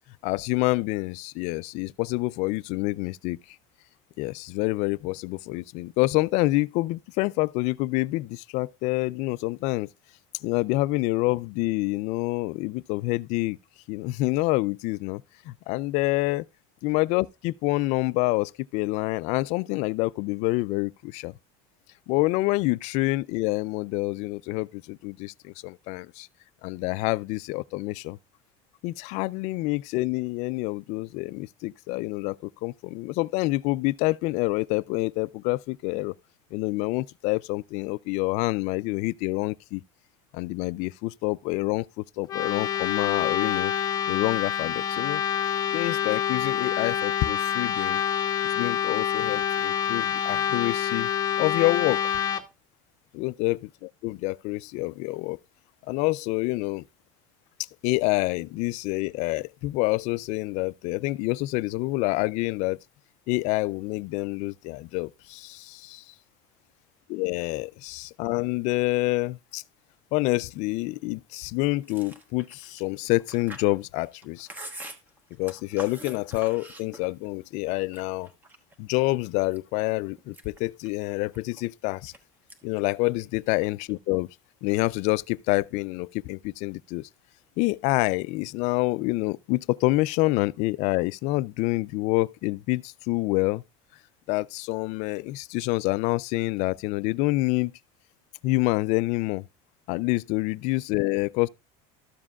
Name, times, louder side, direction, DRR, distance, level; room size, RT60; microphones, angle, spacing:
voice 1, 0.2-3.4 4.2-9.9 10.4-13.6 13.9-16.4 16.8-21.3 22.1-26.3 26.6-28.2 28.8-36.1 36.5-39.8 40.3-43.7 44.1-45.2 45.7-48.0 48.4-51.1 51.4-52.1 53.1-55.4 55.9-56.8 57.8-62.8 63.3-66.1 67.1-69.6 70.1-74.5 75.4-78.3 78.8-82.1 82.6-84.3 84.6-87.1 87.6-93.6 94.3-97.7 98.4-99.5 99.9-101.5, left 21 dB, 50° left, 0.4 m, -27 dB
sound 1, 42.2-52.4, left 9 dB, 25° left, 0.8 m, -27 dB
Chewing mastication, 71.8-77.3 77.7-78.7 79.2-79.8 80.2-82.2 82.5-82.8 83.1-83.9, right 1 dB, 10° right, 1.2 m, -45 dB
13.0 x 7.4 x 2.4 m
cardioid pair, 160°, 15 cm